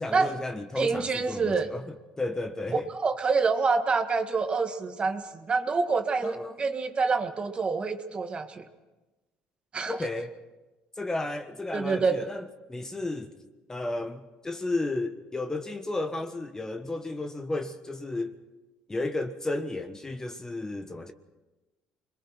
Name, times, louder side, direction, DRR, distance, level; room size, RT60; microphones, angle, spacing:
voice 1, 0.0-1.8 2.2-2.9 6.2-6.5 9.8-10.4 11.0-13.3 13.7-18.4 18.9-21.1, left 2 dB, 15° left, 1.3 m, -33 dB
voice 2, 0.8-1.7 2.9-8.7 9.7-10.0 11.7-12.2, right 4 dB, 35° right, 1.8 m, -27 dB
28.5 x 22.0 x 4.6 m
supercardioid pair, 80°, 3 cm